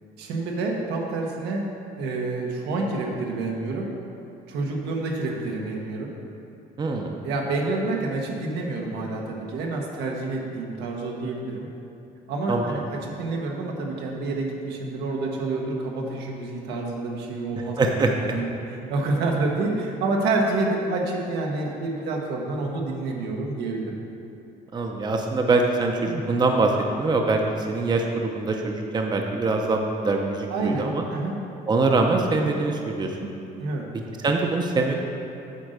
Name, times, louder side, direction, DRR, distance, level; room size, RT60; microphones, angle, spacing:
voice 1, 0.2-1.6 2.0-3.9 4.5-6.1 7.2-11.7 12.3-24.0 26.0-26.2 30.5-31.4 33.6-33.9, right 3 dB, 85° right, 0 dB, 1.2 m, -28 dB
voice 2, 6.8-7.1 12.5-12.7 17.8-18.2 24.7-26.7 27.0-31.0 31.7-33.2 34.2-34.9, right 3 dB, 25° right, 2 dB, 0.7 m, -23 dB
8.2 x 3.8 x 6.6 m, 2.9 s
cardioid pair, 110°, 17 cm